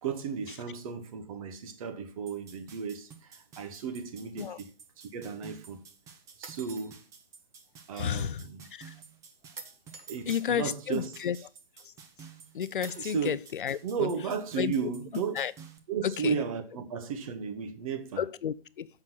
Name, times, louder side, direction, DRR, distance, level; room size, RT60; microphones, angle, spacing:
voice 1, 0.0-4.7 5.1-5.9 6.4-7.0 7.9-8.7 10.1-11.2 12.9-13.4 13.8-15.4 15.9-18.3, right 6 dB, 35° right, 1.3 m, -34 dB
sound 1, 2.3-15.8, right 6 dB, 10° right, 0.7 m, -53 dB
sound 2, 6.4-6.9 9.6-10.5 12.8-13.3, right 5 dB, 60° right, 1.8 m, -46 dB
voice 2, 8.0-8.4 8.7-8.9 10.3-11.4 12.5-14.1 14.6-14.7 15.4-15.5 16.0-16.4 18.2-18.9, left 9 dB, 55° left, 0.6 m, -31 dB
7.4 x 6.3 x 5.7 m
figure-of-eight pair, 135°, 31 cm